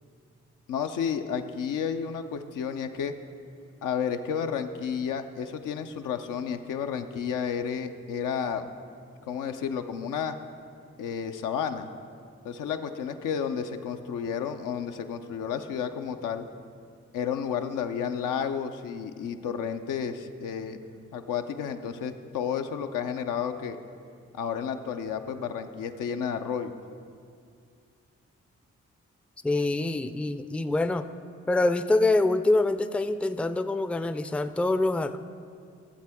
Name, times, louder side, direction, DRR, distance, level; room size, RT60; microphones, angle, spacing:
voice 1, 0.7-3.2 3.8-8.7 9.3-10.4 11.0-11.9 12.4-16.5 17.1-20.8 21.1-23.8 24.3-26.8, left 7 dB, 80° left, 7 dB, 0.5 m, -31 dB
voice 2, 29.4-31.1 31.5-35.2, left 2 dB, 5° left, 11 dB, 0.4 m, -25 dB
12.5 x 7.6 x 3.5 m, 2.3 s
supercardioid pair, 40°, 31 cm